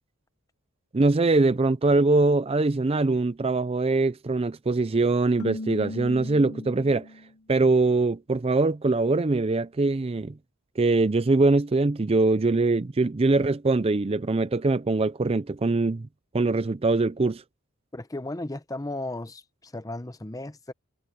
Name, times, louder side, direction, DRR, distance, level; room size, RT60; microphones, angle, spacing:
voice 1, 0.9-7.1 7.5-10.3 10.8-16.1 16.3-17.4, right 3 dB, 25° right, 0.4 m, -23 dB
Keyboard (musical), 5.4-7.4, left 2 dB, 75° left, 1.7 m, -37 dB
voice 2, 17.9-20.7, left 2 dB, 15° left, 0.8 m, -35 dB
head